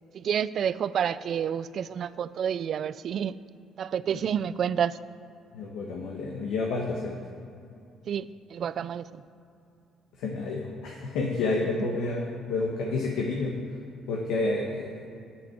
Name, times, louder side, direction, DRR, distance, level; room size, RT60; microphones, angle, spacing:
voice 1, 0.1-3.3 3.8-5.0 8.1-9.2, right 8 dB, 60° right, 16 dB, 0.3 m, -29 dB
voice 2, 5.5-7.1 10.2-13.5 14.1-15.0, left 3 dB, 80° left, -1 dB, 1.2 m, -29 dB
7.7 x 7.1 x 8.0 m, 2.6 s
supercardioid pair, 70°, 0 cm